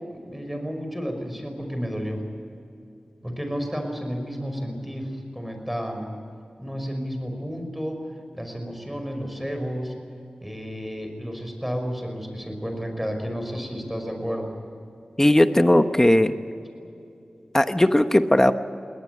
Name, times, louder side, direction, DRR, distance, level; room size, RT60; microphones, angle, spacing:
voice 1, 0.0-2.2 3.2-6.1 6.6-9.9 10.4-14.5, equal, 5° right, 5 dB, 5.5 m, -31 dB
voice 2, 15.2-16.3 17.5-18.5, left 1 dB, 20° left, 9 dB, 1.1 m, -17 dB
21.5 x 18.5 x 9.5 m, 2.7 s
cardioid pair, 50°, 2 cm